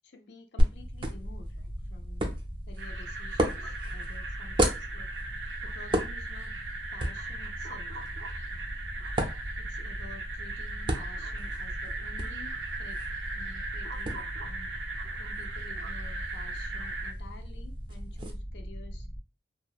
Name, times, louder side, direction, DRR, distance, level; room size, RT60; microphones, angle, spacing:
voice 1, 0.0-2.3 2.7-5.1 5.6-6.5 6.9-7.9 9.6-12.5 12.8-13.0 13.3-14.7 15.2-19.1, left 3 dB, 75° left, 0.5 m, -51 dB
sound 1, 0.6-18.3, right 1 dB, 30° right, 0.4 m, -35 dB
sound 2, 0.7-19.2, equal, 15° left, 0.8 m, -40 dB
sound 3, 2.8-17.1, right 3 dB, 85° right, 0.5 m, -39 dB
2.7 x 2.1 x 2.3 m
head